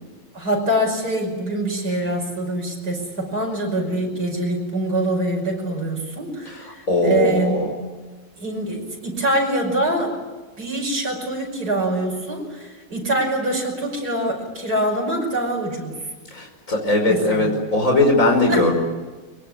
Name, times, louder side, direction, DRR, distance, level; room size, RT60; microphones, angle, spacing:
voice 1, 0.3-7.6 8.4-10.1 10.6-16.0 17.1-17.6 18.5-18.7, right 1 dB, 60° right, 0 dB, 6.2 m, -24 dB
voice 2, 6.5-7.7 16.3-18.7, left 2 dB, 45° left, 2 dB, 5.7 m, -19 dB
23.5 x 22.5 x 9.8 m, 1.3 s
omnidirectional pair, 1.9 m